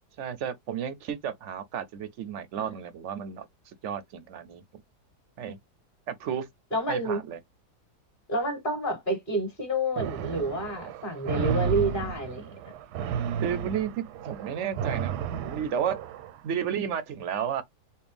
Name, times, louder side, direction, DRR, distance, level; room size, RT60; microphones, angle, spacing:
voice 1, 0.2-4.6 5.4-5.6 6.2-6.5 6.9-7.4 13.4-13.9 14.2-16.0 16.4-17.6, right 8 dB, 65° right, 0.7 m, -32 dB
voice 2, 6.7-7.2 8.3-12.5, right 1 dB, 30° left, 1.7 m, -29 dB
sound 1, 10.0-16.4, right 8 dB, 90° right, 1.2 m, -33 dB
4.4 x 2.2 x 3.4 m
omnidirectional pair, 1.7 m